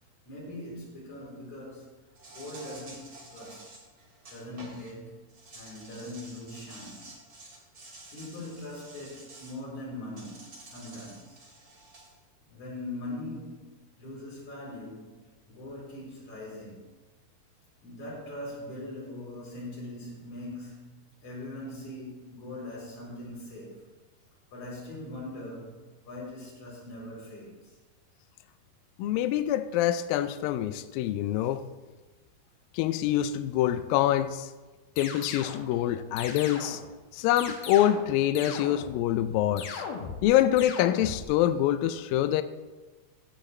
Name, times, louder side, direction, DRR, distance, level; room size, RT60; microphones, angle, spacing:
voice 1, 0.3-1.9 2.3-3.6 4.3-5.1 5.5-7.0 8.1-11.4 12.5-13.7 14.0-15.2 15.5-16.8 17.8-20.8 21.2-23.8 24.5-27.7 35.7-35.8, left 1 dB, 45° left, -5 dB, 5.0 m, -41 dB
Insect, 2.2-4.9 5.3-9.6 10.2-12.1, right 2 dB, 30° right, 1.7 m, -49 dB
voice 2, 29.0-31.6 32.7-34.5 35.0-36.8 37.1-39.8 40.2-42.4, left 12 dB, 90° left, 11 dB, 2.0 m, -25 dB
sound 1, 35.0-35.6 36.2-36.9 37.4-38.1 38.4-39.0 39.6-40.3 40.6-41.3, left 6 dB, 70° left, 2.9 m, -38 dB
15.5 x 9.7 x 3.3 m, 1.2 s
omnidirectional pair, 4.7 m